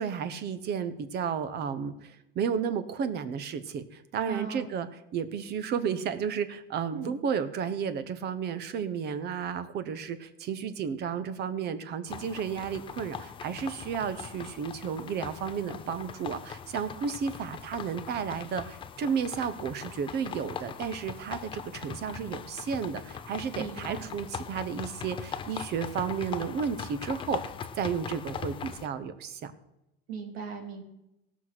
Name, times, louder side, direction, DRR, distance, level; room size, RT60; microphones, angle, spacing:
voice 1, 0.0-4.9 5.1-29.5, right 7 dB, 35° right, 13 dB, 0.9 m, -33 dB
voice 2, 4.3-4.7 6.9-7.2 23.6-24.1 30.1-30.8, right 6 dB, 90° right, 3 dB, 3.0 m, -38 dB
sound 1, 12.1-28.9, left 7 dB, 15° left, 0.5 m, -40 dB
17.5 x 6.2 x 6.0 m, 0.89 s
supercardioid pair, 155°, 30 cm